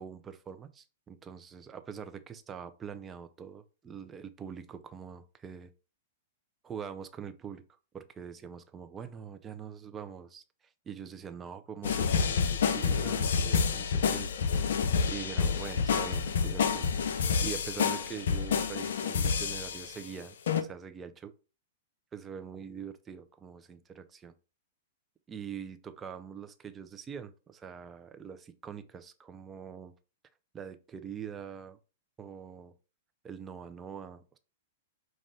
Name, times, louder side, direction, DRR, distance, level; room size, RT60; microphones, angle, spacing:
voice 1, 0.0-5.7 6.6-7.6 7.9-14.6 15.1-16.9 17.4-21.3 22.1-24.3 25.3-29.9 30.5-31.8 32.2-32.7 33.2-34.4, right 7 dB, 20° right, 0.6 m, -44 dB
sound 1, 11.8-20.0 20.5-20.6, left 6 dB, 70° left, 0.5 m, -28 dB
5.3 x 2.5 x 3.3 m
hypercardioid pair, 115°, 0 cm